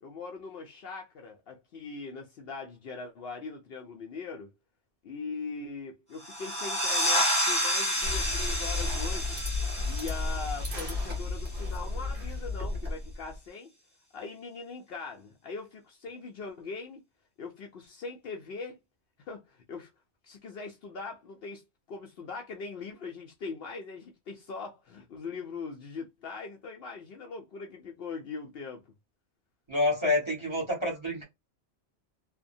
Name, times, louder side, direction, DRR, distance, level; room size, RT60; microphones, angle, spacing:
voice 1, 0.0-4.5 5.0-9.4 9.9-13.7 14.1-17.0 17.4-18.8 19.2-19.9 20.2-21.6 21.9-28.8, left 4 dB, 60° left, 0.7 m, -41 dB
sound 1, 6.2-11.6, equal, 5° left, 0.8 m, -30 dB
sound 2, 8.0-13.4, left 3 dB, 50° right, 1.3 m, -33 dB
voice 2, 29.7-31.2, left 2 dB, 25° right, 1.1 m, -28 dB
2.9 x 2.1 x 2.5 m
omnidirectional pair, 1.2 m